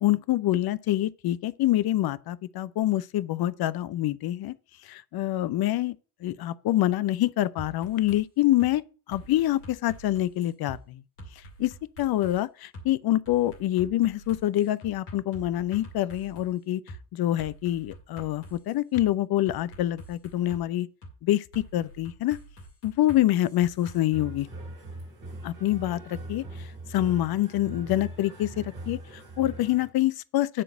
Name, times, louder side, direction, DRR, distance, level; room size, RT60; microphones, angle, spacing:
voice 1, 0.0-4.6 4.8-6.0 6.2-8.8 9.1-11.0 11.6-16.8 17.1-20.9 21.2-22.4 22.8-24.5 25.4-30.6, left 14 dB, 55° left, 0.7 m, -26 dB
sound 1, 7.6-8.2 8.6-8.7 9.1-10.8 11.2-12.4 12.7-12.9 13.2-16.5 16.9-17.0 17.4-19.1 19.5-20.6 21.0-21.1 21.5-24.0, right 1 dB, 90° left, 2.3 m, -46 dB
sound 2, 24.1-29.9, right 1 dB, 75° right, 4.1 m, -41 dB
10.0 x 3.9 x 7.4 m
hypercardioid pair, 45°, 46 cm